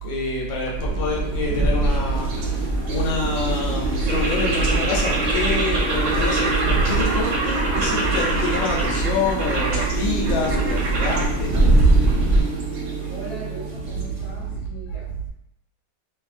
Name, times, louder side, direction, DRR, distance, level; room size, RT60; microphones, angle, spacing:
voice 1, 0.0-11.6 12.3-12.5 13.0-13.1 13.8-15.0, left 1 dB, 80° left, -2 dB, 1.3 m, -27 dB
sound 1, 0.8-12.4, right 2 dB, 45° right, 0.5 m, -23 dB
sound 2, 1.0-14.4, right 2 dB, 65° right, 1.0 m, -27 dB
voice 2, 1.5-1.9 13.1-15.3, right 1 dB, 40° left, -9 dB, 1.1 m, -39 dB
2.8 x 2.6 x 2.4 m, 0.80 s
omnidirectional pair, 2.1 m